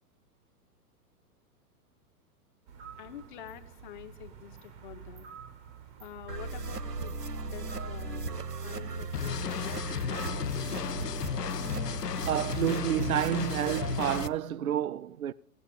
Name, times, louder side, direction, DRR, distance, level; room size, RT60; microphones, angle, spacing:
sound 1, 2.7-11.6, right 8 dB, 15° right, 0.6 m, -50 dB
voice 1, 3.0-5.3 6.0-7.2 7.4-10.4, left 10 dB, 30° left, 0.9 m, -47 dB
sound 2, 6.3-14.3, right 4 dB, 75° right, 1.0 m, -37 dB
sound 3, 9.1-14.3, left 9 dB, 75° left, 0.6 m, -34 dB
voice 2, 12.3-15.3, right 10 dB, 60° right, 0.6 m, -29 dB
16.5 x 8.1 x 5.5 m
figure-of-eight pair, 110°, 48 cm